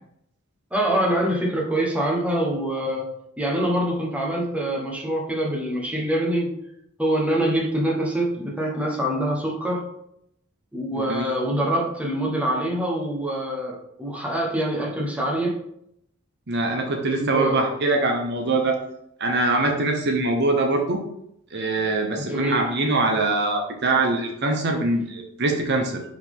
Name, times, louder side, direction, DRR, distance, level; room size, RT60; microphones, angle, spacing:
voice 1, 0.7-3.1 3.4-6.5 7.0-9.9 10.7-15.6 17.2-17.6 22.2-22.7, right 1 dB, 5° right, -2 dB, 1.1 m, -25 dB
voice 2, 10.9-11.3 16.5-18.8 19.2-21.0 21.5-26.0, right 2 dB, 50° right, 3 dB, 0.9 m, -23 dB
5.8 x 5.1 x 3.6 m, 0.75 s
head